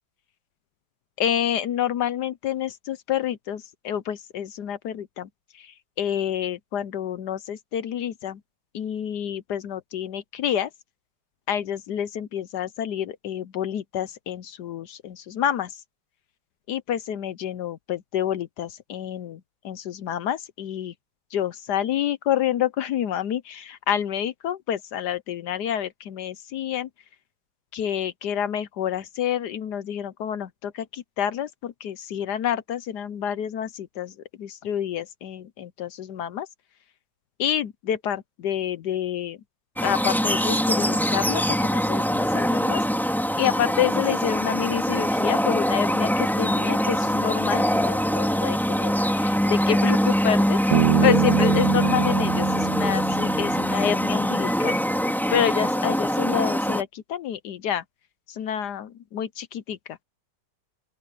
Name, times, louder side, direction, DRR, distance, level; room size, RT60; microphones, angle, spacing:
voice 1, 1.2-5.3 6.0-8.4 8.7-10.7 11.5-15.7 16.7-19.4 19.6-20.9 21.3-26.9 27.7-34.1 34.4-36.5 37.4-39.4 39.8-42.8 43.4-54.8 55.3-57.8 58.3-59.8, left 10 dB, 65° left, 1.1 m, -28 dB
sound 1, 39.8-56.8, equal, ahead, 3.2 m, -23 dB
Bass guitar, 50.7-54.2, right 11 dB, 65° right, 1.2 m, -25 dB
open air
omnidirectional pair, 2.2 m